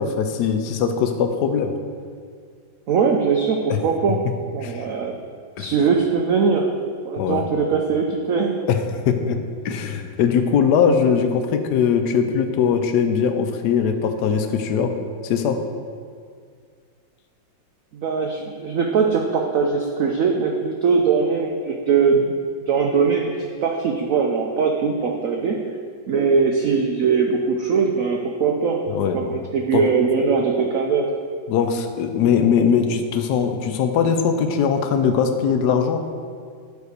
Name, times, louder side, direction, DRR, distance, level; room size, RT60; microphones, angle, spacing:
voice 1, 0.0-1.7 3.7-3.8 4.6-4.8 5.6-5.7 7.2-7.4 8.7-9.4 9.6-14.9 15.2-15.6 28.9-29.2 29.7-29.8 31.5-36.0, left 7 dB, 65° left, 6 dB, 1.1 m, -20 dB
voice 2, 2.9-4.3 4.5-5.1 5.6-6.7 7.0-8.6 17.9-22.3 22.7-25.6 26.1-28.9 29.1-31.1, right 5 dB, 85° right, 2 dB, 0.7 m, -21 dB
8.4 x 4.7 x 6.5 m, 2.1 s
omnidirectional pair, 2.2 m